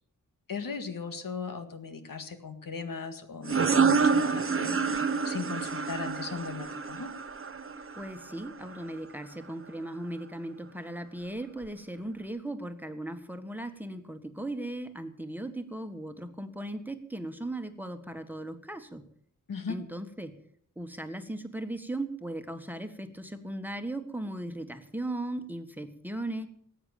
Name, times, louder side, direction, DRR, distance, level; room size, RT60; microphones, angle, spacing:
voice 1, 0.5-7.1 19.5-19.8, left 5 dB, 80° left, 7 dB, 1.9 m, -38 dB
sound 1, 3.4-8.8, right 5 dB, 40° right, 0.9 m, -28 dB
voice 2, 7.9-19.0 19.7-20.3 20.7-26.5, right 1 dB, 5° right, 7 dB, 1.5 m, -37 dB
19.0 x 8.9 x 7.1 m, 0.63 s
wide cardioid pair, 105°, 33 cm